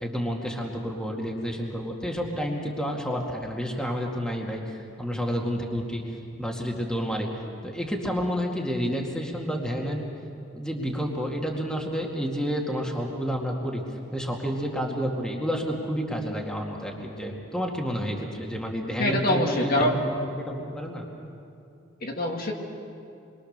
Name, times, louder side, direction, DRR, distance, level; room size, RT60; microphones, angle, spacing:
voice 1, 0.0-6.0 6.4-7.3 7.6-10.1 10.5-13.8 14.1-21.1, equal, 5° left, 0 dB, 2.2 m, -30 dB
voice 2, 19.0-20.0 22.0-22.5, left 1 dB, 50° left, 1 dB, 2.3 m, -24 dB
28.0 x 23.0 x 6.7 m, 2.6 s
head